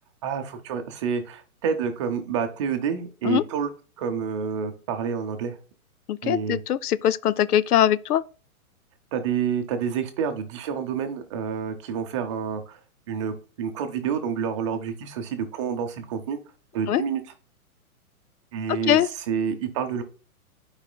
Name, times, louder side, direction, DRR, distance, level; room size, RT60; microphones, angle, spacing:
voice 1, 0.2-3.7 4.0-5.6 6.2-6.6 9.1-12.8 13.1-16.4 16.7-17.2 18.5-19.0 19.3-20.0, right 7 dB, 20° right, 0.6 m, -28 dB
voice 2, 6.1-8.2 16.9-17.0 18.7-19.1, left 11 dB, 90° left, 0.5 m, -22 dB
12.0 x 4.8 x 2.3 m
hypercardioid pair, 145°, 44 cm